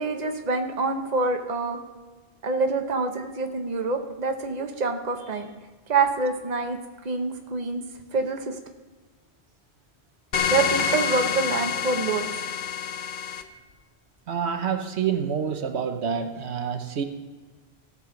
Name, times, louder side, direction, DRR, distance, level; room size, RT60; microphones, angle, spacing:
voice 1, 0.0-1.8 2.4-5.5 5.9-6.8 7.0-7.8 8.1-8.6 10.5-12.2, right 3 dB, 40° right, 4 dB, 1.0 m, -26 dB
sound 1, 10.3-13.4, left 7 dB, 55° left, 0.8 m, -27 dB
voice 2, 14.3-17.0, right 7 dB, 85° right, 6 dB, 1.2 m, -27 dB
17.0 x 6.7 x 3.9 m, 1.3 s
omnidirectional pair, 1.1 m